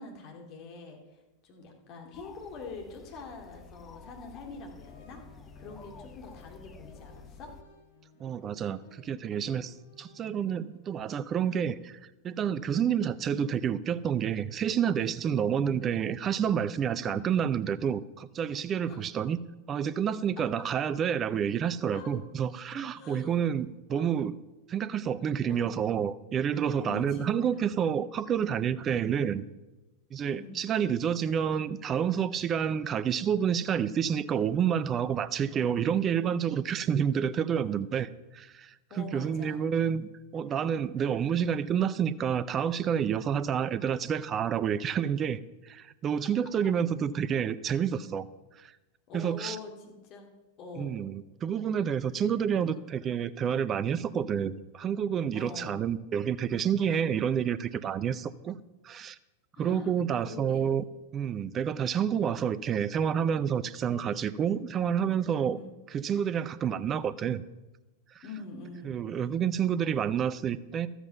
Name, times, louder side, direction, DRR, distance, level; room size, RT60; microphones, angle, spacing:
voice 1, 0.0-5.2 5.5-7.5 15.5-15.7 17.0-17.2 18.9-19.0 21.9-22.1 22.9-23.4 23.9-24.1 25.4-25.8 26.8-27.6 30.2-30.6 38.9-39.6 49.1-50.3 50.6-51.0 52.2-52.3 52.7-52.9 55.3-55.8 59.5-59.9 60.2-60.7 65.4-65.7 68.2-69.0, left 4 dB, 40° left, 2 dB, 2.4 m, -44 dB
sound 1, 2.1-7.6, left 5 dB, 20° left, 0.8 m, -51 dB
sound 2, 4.5-10.8, left 3 dB, 65° left, 1.9 m, -58 dB
voice 2, 8.2-12.0 12.2-19.4 19.7-24.4 24.7-29.4 30.1-45.4 45.6-48.3 48.6-48.7 49.1-49.6 50.8-58.6 58.8-59.2 59.6-60.8 61.1-65.6 65.9-67.4 68.8-70.9, right 8 dB, 25° right, 17 dB, 0.5 m, -29 dB
12.5 x 8.1 x 5.7 m, 1.1 s
figure-of-eight pair, 90°, 0 cm